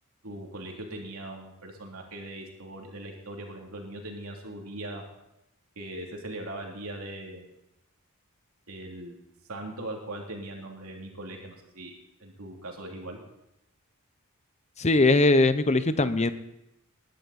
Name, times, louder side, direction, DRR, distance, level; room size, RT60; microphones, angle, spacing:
voice 1, 0.2-5.0 5.8-7.5 8.7-9.2 9.5-11.9 12.2-13.2, right 1 dB, 75° right, 0 dB, 3.1 m, -40 dB
voice 2, 14.8-16.3, left 2 dB, 30° left, 12 dB, 0.8 m, -21 dB
20.0 x 11.5 x 4.3 m, 0.87 s
head